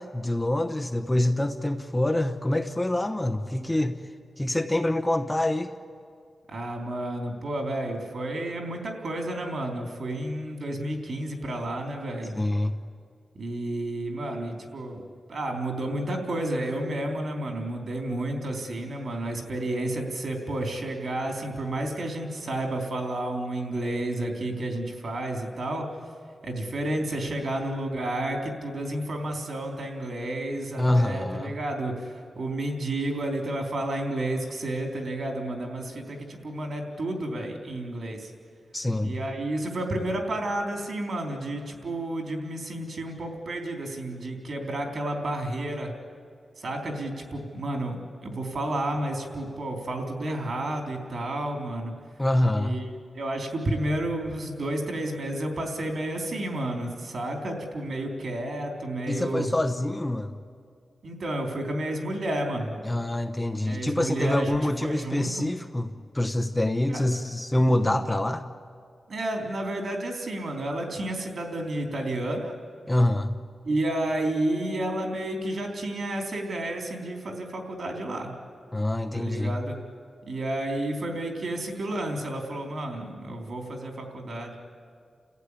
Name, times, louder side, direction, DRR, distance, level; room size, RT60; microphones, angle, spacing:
voice 1, 0.0-4.0 4.4-5.7 12.3-12.7 30.8-31.5 38.7-39.1 52.2-52.8 59.1-60.3 62.8-68.4 72.9-73.4 78.7-79.6, left 1 dB, 15° left, 7 dB, 0.9 m, -26 dB
voice 2, 6.5-12.3 13.4-25.9 26.4-38.3 39.0-45.9 46.6-51.9 52.5-59.5 61.0-62.8 63.7-65.5 66.9-67.0 67.9-68.0 69.1-72.5 73.6-78.3 79.1-79.8 80.3-84.6, right 1 dB, 60° right, 3 dB, 3.8 m, -31 dB
30.0 x 15.0 x 9.9 m, 2.2 s
wide cardioid pair, 130°, 0 cm